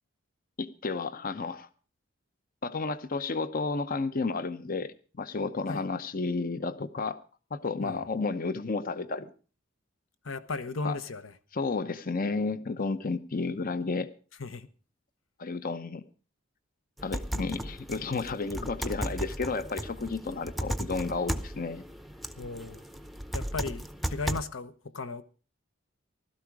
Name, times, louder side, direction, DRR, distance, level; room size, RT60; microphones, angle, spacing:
voice 1, 0.6-1.7 2.6-7.2 7.5-9.3 10.8-11.0 11.5-14.1 15.4-16.0 17.0-21.8, left 3 dB, 45° left, 0.8 m, -32 dB
voice 2, 10.2-11.3 14.4-14.7 18.5-18.7 22.4-22.8 23.3-25.2, left 3 dB, 75° left, 1.1 m, -36 dB
sound 1, 17.0-24.4, right 1 dB, ahead, 0.7 m, -36 dB
15.5 x 13.0 x 4.8 m
head